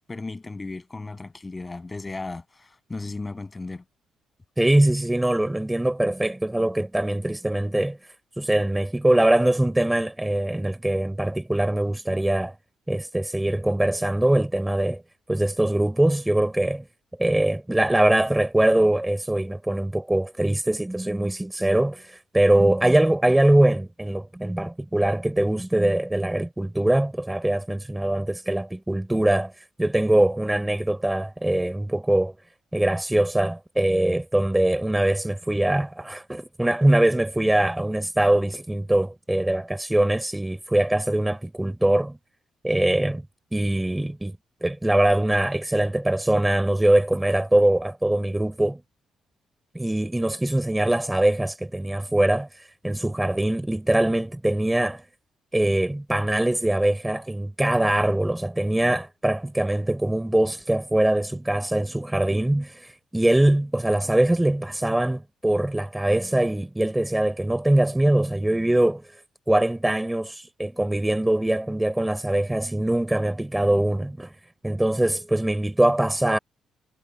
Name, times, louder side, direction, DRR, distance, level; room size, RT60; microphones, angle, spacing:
voice 1, 0.1-3.8, left 3 dB, 20° left, 7.9 m, -35 dB
voice 2, 4.6-8.0 8.4-12.5 12.9-15.0 15.3-16.8 17.2-29.5 29.8-32.3 32.7-42.2 42.6-43.2 43.5-44.4 44.6-48.8 49.7-52.5 52.8-55.0 55.5-69.0 69.5-74.3 74.6-76.4, right 1 dB, 10° right, 4.8 m, -22 dB
cardioid pair, 90°, 0 cm